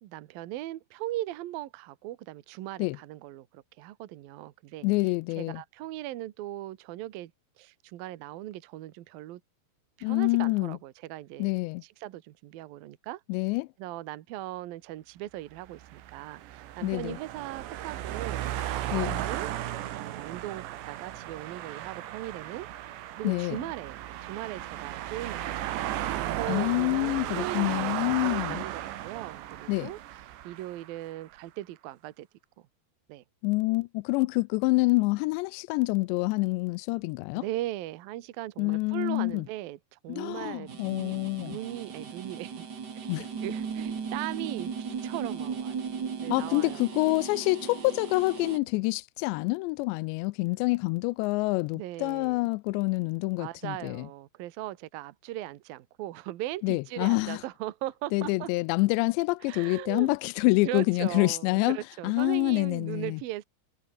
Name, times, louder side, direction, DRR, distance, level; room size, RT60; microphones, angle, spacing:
voice 1, 0.0-4.9 5.4-7.3 7.6-9.4 10.0-11.5 11.8-13.2 13.8-18.7 19.0-19.5 19.9-25.7 26.4-27.9 28.2-32.3 33.1-33.2 37.3-42.7 42.9-43.2 43.4-45.8 46.2-46.8 51.7-52.5 53.4-58.5 59.5-60.1 60.6-63.4, right 15 dB, 65° right, 2.7 m, -39 dB
voice 2, 4.8-5.6 10.0-10.8 11.4-11.8 13.3-13.7 16.8-17.2 18.9-19.2 23.2-23.6 26.5-28.6 29.7-29.9 33.4-37.4 38.6-39.5 40.1-41.6 43.1-43.3 46.3-54.1 56.6-57.4 58.1-61.8 62.0-63.2, left 24 dB, 85° left, 2.8 m, -27 dB
sound 1, 15.7-31.1, right 13 dB, 80° right, 3.9 m, -35 dB
sound 2, 40.7-48.6, right 6 dB, 50° right, 1.3 m, -36 dB
omnidirectional pair, 5.0 m